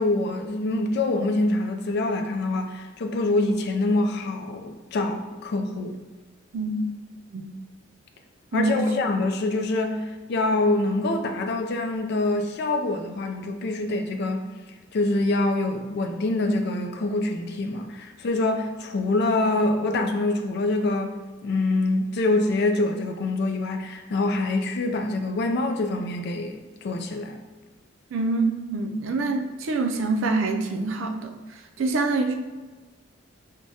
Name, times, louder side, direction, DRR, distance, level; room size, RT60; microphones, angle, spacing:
voice 1, 0.0-6.0 8.5-14.5 14.9-21.2 21.4-27.4, left 2 dB, 55° left, 0.4 m, -25 dB
voice 2, 8.5-9.1 28.1-31.4 31.8-32.3, right 3 dB, 70° right, 0.4 m, -25 dB
4.7 x 2.1 x 2.7 m
head